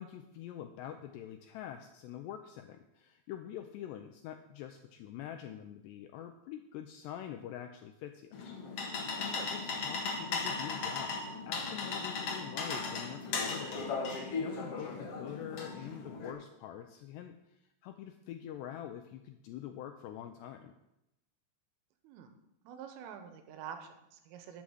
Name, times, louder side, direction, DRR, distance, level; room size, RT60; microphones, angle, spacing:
voice 1, 0.0-8.3 8.7-8.8 9.2-14.0 14.4-20.7, left 10 dB, 90° left, 6 dB, 2.4 m, -45 dB
sound 1, 8.3-16.3, left 4 dB, 65° left, 1.4 m, -37 dB
voice 2, 22.7-24.6, right 8 dB, 85° right, 7 dB, 3.7 m, -47 dB
12.0 x 7.7 x 7.9 m, 0.89 s
omnidirectional pair, 5.7 m